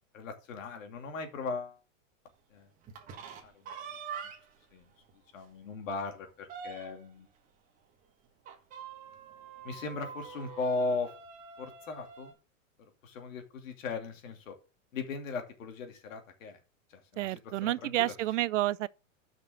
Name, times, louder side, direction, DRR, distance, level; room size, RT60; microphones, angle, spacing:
voice 1, 0.1-1.8 2.5-2.7 3.4-3.8 4.2-4.3 4.7-4.9 5.3-7.3 9.6-11.1 11.6-12.3 12.8-14.6 14.9-16.6 16.9-18.1, left 3 dB, 75° left, 2.7 m, -38 dB
sound 1, 2.8-4.6 5.1-5.2 5.5-5.6 6.0-7.2 8.4-12.3, right 6 dB, 20° right, 1.4 m, -45 dB
voice 2, 17.2-18.9, right 15 dB, 65° right, 0.5 m, -30 dB
6.5 x 6.0 x 6.2 m
supercardioid pair, 165°, 39 cm